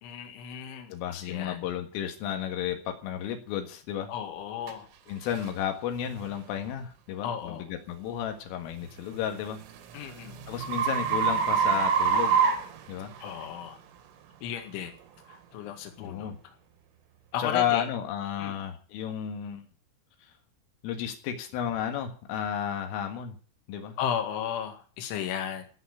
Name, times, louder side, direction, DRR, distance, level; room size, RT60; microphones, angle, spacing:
voice 1, 0.0-1.6 4.1-4.9 7.2-7.7 9.9-10.4 13.2-13.8 14.4-14.9 15.3-16.4 17.3-17.9 18.4-18.5 24.0-25.7, left 9 dB, 75° left, 5 dB, 4.4 m, -35 dB
voice 2, 0.9-4.1 5.1-9.6 10.5-12.4 12.9-13.1 16.0-16.4 17.4-19.6 20.8-23.4 23.7-24.0, left 9 dB, 90° left, 5 dB, 4.4 m, -32 dB
sound 1, 4.7-4.8 5.4-5.6 6.2-6.4 9.0-13.5, right 6 dB, 90° right, 4.4 m, -26 dB
17.0 x 7.0 x 9.9 m, 0.41 s
omnidirectional pair, 5.6 m